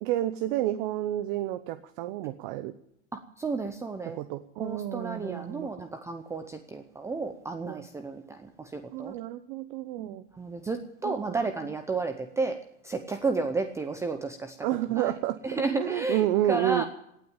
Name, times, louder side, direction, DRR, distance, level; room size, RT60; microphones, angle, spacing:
voice 1, 0.0-2.7 4.0-5.7 7.7-7.9 8.9-10.2 11.0-11.4 14.6-16.8, right 14 dB, 45° right, 13 dB, 0.9 m, -30 dB
voice 2, 3.1-4.2 4.6-9.2 10.0-12.6 12.8-14.6 15.0-15.1 15.4-16.8, right 3 dB, 10° right, 7 dB, 0.7 m, -32 dB
17.5 x 9.0 x 8.8 m, 0.75 s
supercardioid pair, 155°, 36 cm